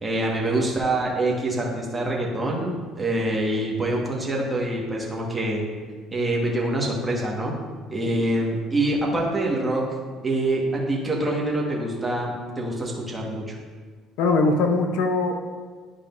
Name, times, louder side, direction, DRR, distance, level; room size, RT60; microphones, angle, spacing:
voice 1, 0.0-5.6 6.1-7.6 7.9-9.8 10.2-13.6, right 1 dB, 15° right, -3 dB, 1.6 m, -25 dB
voice 2, 8.1-8.5 14.2-15.5, left 3 dB, 85° left, 4 dB, 0.8 m, -22 dB
11.0 x 5.0 x 2.6 m, 1.5 s
cardioid pair, 105°, 0 cm